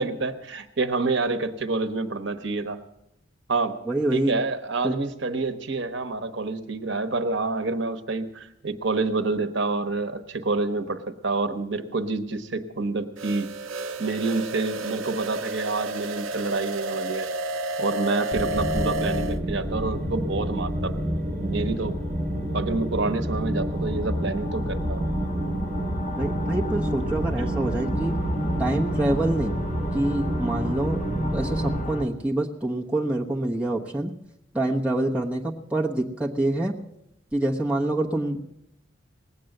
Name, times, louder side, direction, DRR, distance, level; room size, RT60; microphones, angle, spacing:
voice 1, 0.0-2.8 3.5-3.8 4.1-13.5 14.0-17.3 17.8-21.1 21.4-21.9 22.5-25.1, right 3 dB, 65° right, 10 dB, 1.1 m, -28 dB
voice 2, 3.9-4.3 4.8-4.9 26.2-28.2 28.6-29.5 29.9-31.0 31.3-34.1 34.5-36.7 37.3-38.5, right 1 dB, 5° right, -3 dB, 1.1 m, -26 dB
sound 1, 13.2-19.4, right 2 dB, 85° right, 0.6 m, -31 dB
sound 2, 18.3-31.8, equal, 35° right, 3.2 m, -28 dB
sound 3, 21.1-32.0, right 1 dB, 35° left, 1.2 m, -35 dB
19.5 x 8.5 x 7.8 m, 0.81 s
head